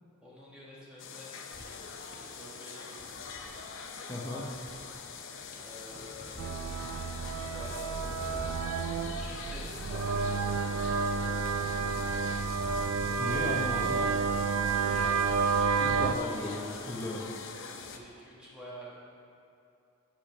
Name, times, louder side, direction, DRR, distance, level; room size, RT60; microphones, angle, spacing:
voice 1, 0.2-1.4 2.0-3.7 5.6-6.4 7.2-7.9 9.1-13.1 13.5-14.1 14.8-15.3 17.9-19.0, equal, 5° right, -7 dB, 1.3 m, -50 dB
sound 1, 1.0-18.0, left 5 dB, 65° left, 0.6 m, -44 dB
sound 2, 1.5-3.9 4.3-18.2, left 1 dB, 45° left, 1.1 m, -53 dB
voice 2, 4.1-4.5 13.0-13.9 15.8-17.2, left 1 dB, 15° left, -6 dB, 0.9 m, -36 dB
sound 3, 6.4-16.2, right 5 dB, 90° right, 0.4 m, -30 dB
8.4 x 6.1 x 5.4 m, 2.6 s
head